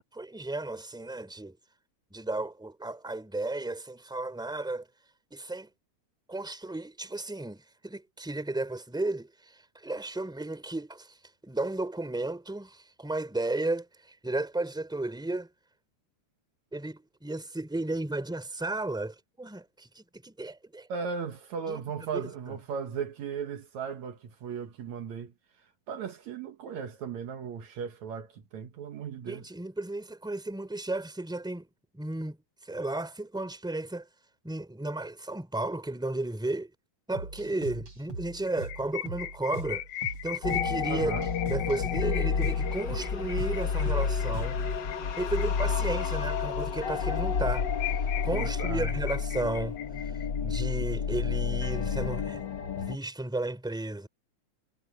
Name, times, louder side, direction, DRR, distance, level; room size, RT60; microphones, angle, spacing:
voice 1, 0.1-1.6 2.1-4.9 5.3-5.7 6.3-11.2 11.4-15.5 16.7-20.9 21.7-21.8 22.1-22.3 29.3-31.7 31.9-32.4 32.7-34.1 34.4-36.7 37.1-39.8 40.2-41.1 41.5-44.6 45.2-47.7 48.2-50.1 50.4-52.4 52.8-54.1, right 2 dB, ahead, 3.1 m, -34 dB
voice 2, 20.9-25.3 25.9-29.5 40.9-41.3 48.2-49.0, right 6 dB, 70° right, 2.6 m, -36 dB
Sicily House Intro, 37.1-44.7, right 3 dB, 45° right, 7.0 m, -41 dB
sound 1, 38.5-46.4 46.8-46.9 47.2-47.3 47.5-50.6, left 14 dB, 85° left, 2.3 m, -39 dB
sound 2, 40.4-53.0, left 6 dB, 50° left, 1.6 m, -30 dB
omnidirectional pair, 3.5 m